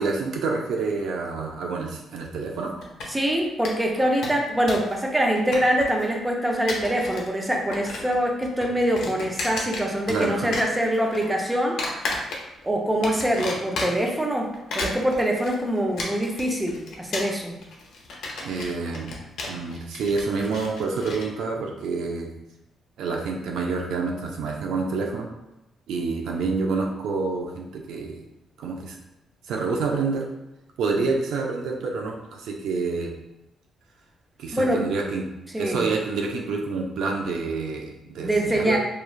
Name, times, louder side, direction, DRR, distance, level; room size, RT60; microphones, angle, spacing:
voice 1, 0.0-2.7 10.1-10.5 18.4-19.1 19.5-22.3 23.0-25.3 25.9-28.2 28.6-29.0 29.5-30.2 30.8-33.1 34.4-35.3 35.6-38.8, right 4 dB, 85° right, 1 dB, 0.4 m, -28 dB
sound 1, 2.8-3.3 3.6-3.7 4.0-4.9 5.2-6.0 6.5-7.3 7.5-8.2 8.4-10.3 10.5-11.2 11.8-12.6 13.0-14.1 14.5-21.2, left 2 dB, 75° left, 0.6 m, -32 dB
voice 2, 3.1-12.1 12.6-17.6 34.5-34.9 35.5-35.9 38.2-38.8, right 1 dB, 10° right, 1 dB, 0.4 m, -24 dB
3.0 x 2.3 x 2.3 m, 0.92 s
cardioid pair, 120°, 0 cm